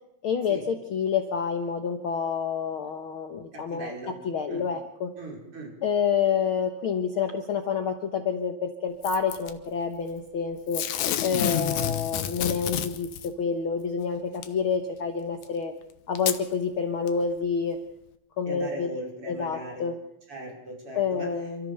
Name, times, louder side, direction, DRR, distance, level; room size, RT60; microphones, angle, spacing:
voice 1, 0.2-3.9 4.2-5.1 5.8-10.8 11.2-15.7 16.1-17.8 18.4-18.9 19.3-19.9 20.9-21.7, left 6 dB, 60° left, 6 dB, 1.5 m, -28 dB
voice 2, 3.5-4.1 4.5-4.6 5.2-5.7 12.4-12.5 18.5-19.9 20.3-21.3, right 1 dB, 45° right, -1 dB, 6.1 m, -39 dB
Packing tape duct tape / Tearing, 9.0-9.5 10.7-13.3 14.4-14.5 15.4-15.5 16.2-16.4 17.1-17.2, left 11 dB, 75° left, 2.5 m, -29 dB
28.5 x 13.5 x 6.7 m, 0.81 s
omnidirectional pair, 3.5 m